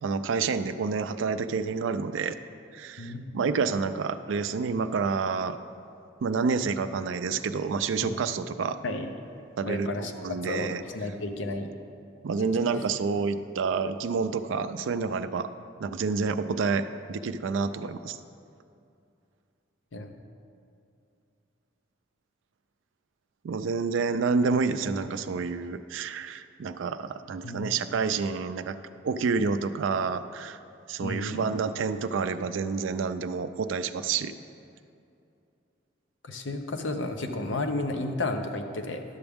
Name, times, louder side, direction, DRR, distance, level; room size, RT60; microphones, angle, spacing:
voice 1, 0.0-2.4 2.7-5.6 6.2-8.8 9.6-10.8 12.2-15.5 15.8-18.2 23.4-28.8 29.0-30.6 30.9-34.3, right 5 dB, 80° right, 11 dB, 0.4 m, -28 dB
voice 2, 9.7-11.7 12.4-12.8 19.9-20.1 27.4-27.9 31.0-31.4 36.2-39.0, left 2 dB, 75° left, 5 dB, 0.7 m, -33 dB
11.0 x 7.0 x 3.5 m, 2.6 s
head